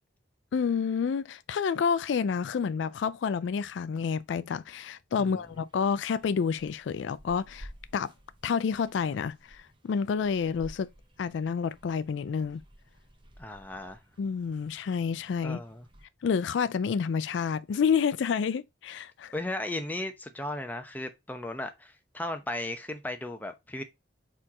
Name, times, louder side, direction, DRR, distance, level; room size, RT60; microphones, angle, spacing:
voice 1, 0.5-8.1 8.4-10.9 11.2-12.6 14.2-15.6 16.2-19.3, left 6 dB, 75° left, 0.3 m, -29 dB
sound 1, 5.3-16.1, equal, 25° right, 0.9 m, -54 dB
voice 2, 13.4-14.0 15.4-15.9 19.3-23.8, left 1 dB, 10° left, 0.9 m, -36 dB
4.4 x 4.4 x 4.8 m
head